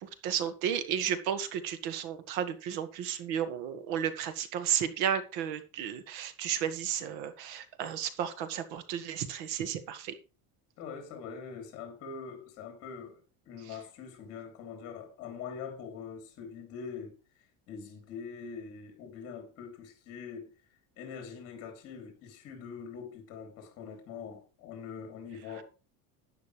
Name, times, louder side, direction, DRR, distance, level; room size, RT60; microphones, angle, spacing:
voice 1, 0.0-10.1, right 9 dB, 70° right, 1.7 m, -33 dB
voice 2, 10.8-13.2 13.4-17.2 17.7-20.5 21.0-25.6, left 6 dB, 45° left, 3.3 m, -43 dB
12.0 x 9.3 x 3.2 m
cardioid pair, 170°, 34 cm